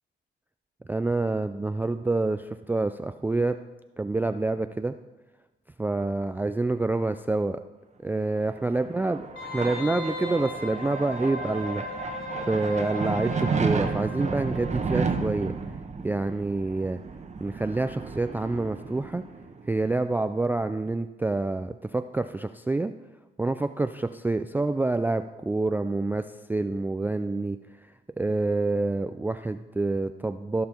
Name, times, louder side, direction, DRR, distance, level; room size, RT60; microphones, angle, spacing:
voice 1, 0.9-3.6 4.0-4.9 5.8-7.6 8.0-9.2 9.5-11.8 12.5-15.5 16.0-17.0 17.4-19.2 19.7-22.9 23.4-27.6 28.2-30.7, right 2 dB, 10° right, 10 dB, 0.3 m, -27 dB
sound 1, 8.4-19.7, right 5 dB, 35° right, 1.0 m, -32 dB
Wind instrument woodwind instrument, 9.4-14.9 15.2-15.3, left 2 dB, 75° left, 3.4 m, -37 dB
16.0 x 5.6 x 4.4 m, 1.1 s
cardioid pair, 90°, 20 cm